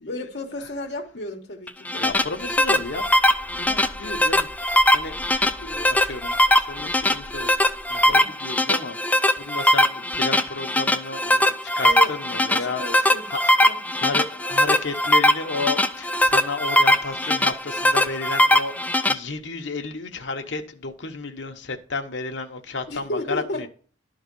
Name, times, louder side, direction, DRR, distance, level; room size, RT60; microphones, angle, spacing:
voice 1, 0.1-2.1 8.1-8.3 11.8-12.1 12.6-13.2 13.6-14.0 22.9-23.7, left 1 dB, 65° left, 1.3 m, -33 dB
sound 1, 1.7-19.1, left 1 dB, 10° left, 0.4 m, -20 dB
voice 2, 2.0-3.0 3.5-9.0 9.4-13.4 14.0-23.7, left 3 dB, 85° left, 1.0 m, -32 dB
sound 2, 2.0-8.2, equal, 30° left, 1.3 m, -45 dB
11.5 x 3.9 x 5.3 m
head